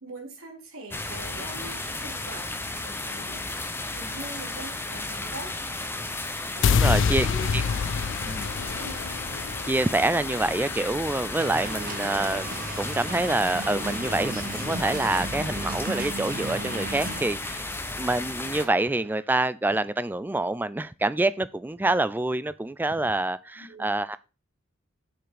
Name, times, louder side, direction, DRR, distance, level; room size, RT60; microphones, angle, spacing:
voice 1, 0.0-3.5 3.9-5.5 6.5-7.5 8.7-9.1 23.6-23.9, right 1 dB, 75° right, 2.8 m, -42 dB
sound 1, 0.9-18.7, left 2 dB, 10° left, 0.8 m, -34 dB
sound 2, 6.6-12.8, left 6 dB, 60° left, 0.4 m, -28 dB
voice 2, 6.7-7.3 7.5-7.6 8.3-8.5 9.6-17.7 18.0-24.2, right 2 dB, 10° right, 0.3 m, -26 dB
sound 3, 11.4-17.2, right 2 dB, 45° right, 1.4 m, -35 dB
6.9 x 5.9 x 5.0 m
head